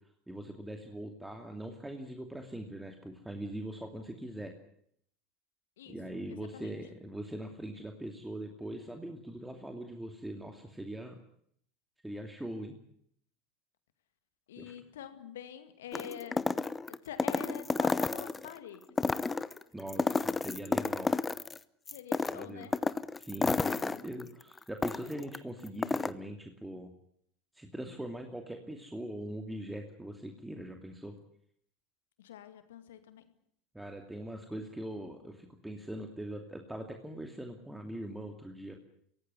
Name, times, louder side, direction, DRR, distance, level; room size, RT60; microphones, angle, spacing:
voice 1, 0.3-4.5 5.9-11.2 12.0-12.7 14.6-14.9 19.7-21.1 22.3-22.7 23.2-26.9 27.5-31.1 33.7-38.8, right 1 dB, 5° right, 4 dB, 2.7 m, -42 dB
voice 2, 14.5-16.4 16.9-18.8 21.9-22.8 32.2-33.3, left 9 dB, 75° left, 10 dB, 2.3 m, -46 dB
sound 1, 15.9-18.5 18.9-21.6 21.9-25.4 25.7-26.1, left 4 dB, 15° left, 1.0 m, -31 dB
24.0 x 17.5 x 9.7 m, 0.69 s
hypercardioid pair, 80°, 0 cm